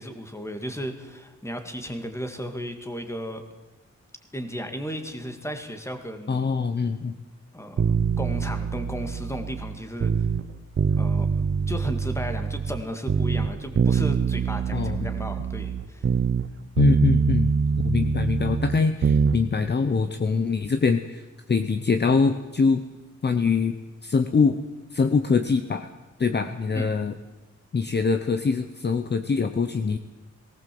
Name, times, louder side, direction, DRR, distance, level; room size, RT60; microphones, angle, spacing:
voice 1, 0.0-3.4 4.3-6.4 7.5-10.3 11.0-16.1 26.7-27.0, equal, 10° left, 6 dB, 2.1 m, -34 dB
voice 2, 6.3-7.2 14.7-15.1 16.8-17.5 17.8-21.2 21.5-22.8 23.2-23.7 24.0-24.6 24.9-25.9 26.2-27.1 27.7-30.0, left 4 dB, 35° left, 8 dB, 0.9 m, -23 dB
sound 1, 7.8-10.5 10.8-12.8 13.1-16.5 16.8-19.4 19.7-19.8, right 5 dB, 45° right, 0.9 m, -24 dB
19.5 x 18.5 x 7.8 m, 1.1 s
wide cardioid pair, 160°, 29 cm